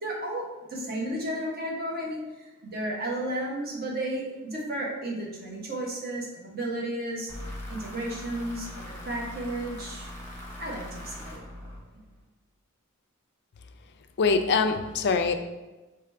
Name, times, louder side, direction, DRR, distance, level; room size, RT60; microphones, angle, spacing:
voice 1, 0.0-10.1 10.6-11.4, right 1 dB, 45° right, -3 dB, 1.1 m, -33 dB
sound 1, 7.3-12.2, left 1 dB, 10° left, 0.9 m, -41 dB
voice 2, 14.2-15.3, left 4 dB, 50° left, 7 dB, 0.4 m, -23 dB
4.8 x 3.2 x 3.4 m, 1.1 s
head